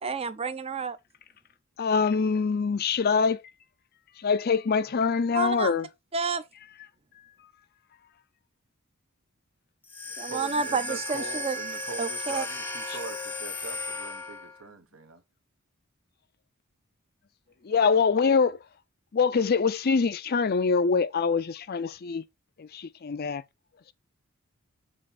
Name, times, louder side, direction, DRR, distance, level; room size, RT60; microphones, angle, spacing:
voice 1, 0.0-1.0 5.3-5.8 6.1-6.4 10.2-11.6 12.0-12.5, right 5 dB, 25° right, 0.6 m, -30 dB
voice 2, 1.8-3.4 4.2-5.9 17.7-18.6 19.1-22.2 22.6-23.4, left 5 dB, 45° left, 0.5 m, -24 dB
sound 1, 9.8-14.6, left 2 dB, 10° left, 0.7 m, -35 dB
voice 3, 10.3-15.2, right 3 dB, 70° right, 1.1 m, -42 dB
7.5 x 3.5 x 4.2 m
head